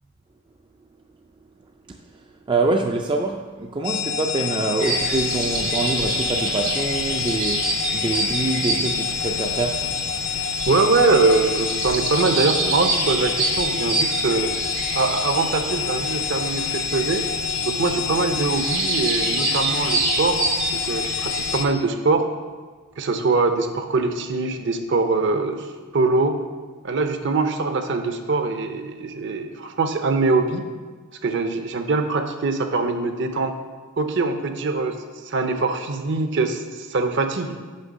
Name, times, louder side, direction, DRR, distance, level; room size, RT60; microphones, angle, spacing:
voice 1, 2.5-9.9, right 3 dB, 25° right, 2 dB, 0.3 m, -25 dB
sound 1, 3.8-21.7, left 7 dB, 50° left, 0.4 m, -27 dB
sound 2, 4.8-21.6, right 3 dB, 80° right, 1.7 m, -28 dB
voice 2, 10.7-14.5 14.9-17.2 17.6-20.5 20.7-22.2 23.0-25.7 25.9-26.4 26.8-30.6 31.2-33.5 34.0-34.9 35.2-37.5, right 3 dB, 55° right, 7 dB, 0.6 m, -23 dB
6.4 x 5.4 x 5.3 m, 1.4 s
head